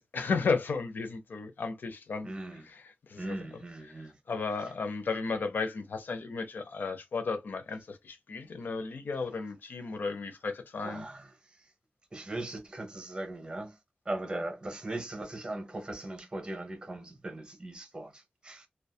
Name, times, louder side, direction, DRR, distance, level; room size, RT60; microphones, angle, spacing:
voice 1, 0.0-2.3 2.7-2.8 3.1-3.4 4.3-11.0, left 4 dB, 90° left, 0.5 m, -34 dB
voice 2, 2.2-2.7 3.2-4.2 4.6-4.7 10.8-11.7 12.1-13.8 14.0-18.7, right 2 dB, 30° right, 0.8 m, -39 dB
2.6 x 2.2 x 2.2 m
wide cardioid pair, 115°, 3 cm